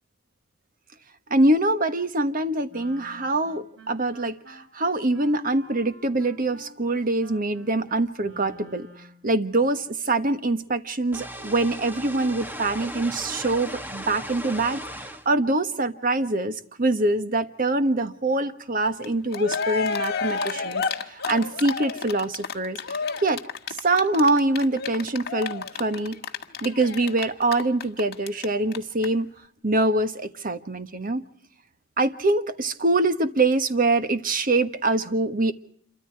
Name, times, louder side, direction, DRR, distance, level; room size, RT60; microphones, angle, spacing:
voice 1, 1.3-8.9 9.2-14.8 15.2-23.4 23.8-26.2 26.6-29.3 29.6-31.2 32.0-35.5, right 2 dB, 45° right, 11 dB, 1.3 m, -24 dB
Wind instrument woodwind instrument, 2.7-9.3, equal, 70° right, 4.2 m, -49 dB
sound 1, 11.1-15.3, equal, 10° right, 1.3 m, -37 dB
Cheering, 19.0-19.1 19.3-28.4 28.7-28.8 29.0-29.1, left 5 dB, 55° left, 1.6 m, -30 dB
27.5 x 24.0 x 4.7 m, 0.62 s
head